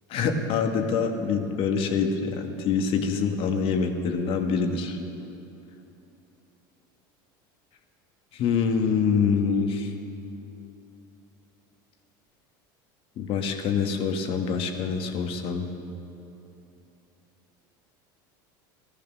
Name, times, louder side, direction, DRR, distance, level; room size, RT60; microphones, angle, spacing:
voice 1, 0.1-5.0 8.3-9.9 13.2-15.7, left 5 dB, 55° left, 5 dB, 1.7 m, -25 dB
16.0 x 13.5 x 6.3 m, 2.9 s
supercardioid pair, 105°, 11 cm